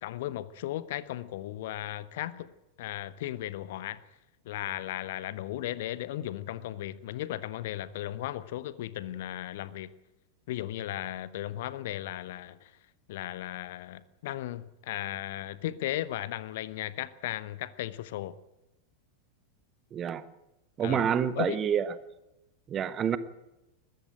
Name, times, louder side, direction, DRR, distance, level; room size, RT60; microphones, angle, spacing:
voice 1, 0.0-2.5 2.8-4.0 4.4-9.9 10.5-12.7 13.1-18.4 20.8-21.1 21.3-21.6, left 14 dB, 55° left, 16 dB, 1.0 m, -36 dB
voice 2, 19.9-20.2 20.8-21.9 22.7-23.2, right 8 dB, 25° right, 14 dB, 1.2 m, -28 dB
21.0 x 15.0 x 8.9 m, 0.97 s
figure-of-eight pair, 90°, 0 cm